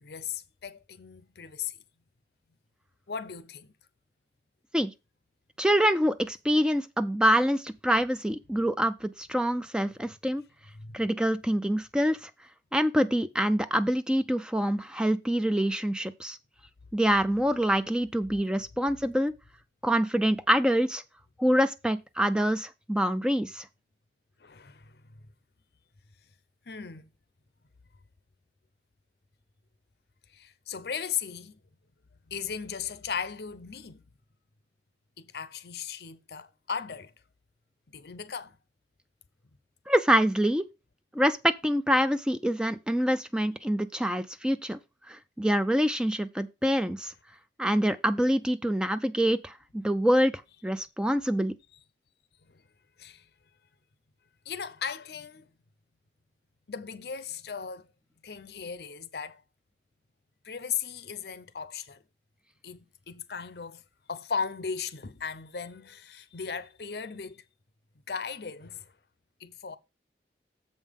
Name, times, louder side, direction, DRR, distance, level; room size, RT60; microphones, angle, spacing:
voice 1, 0.0-1.8 3.1-3.7 10.7-11.0 24.4-25.0 26.7-27.1 30.3-31.6 32.3-34.0 35.2-37.1 37.9-38.6 52.5-52.6 53.0-53.3 54.5-55.5 56.7-57.9 58.2-59.4 60.4-62.0 62.6-63.8 64.1-67.4 68.1-68.9 69.4-69.8, left 6 dB, 70° left, 0.7 m, -37 dB
voice 2, 5.6-10.4 10.9-12.3 12.7-16.4 16.9-19.3 19.8-21.0 21.4-23.6 39.9-40.7 41.1-44.8 45.1-47.1 47.6-50.3 50.6-51.5, equal, 5° right, 0.3 m, -25 dB
7.2 x 5.5 x 5.1 m
head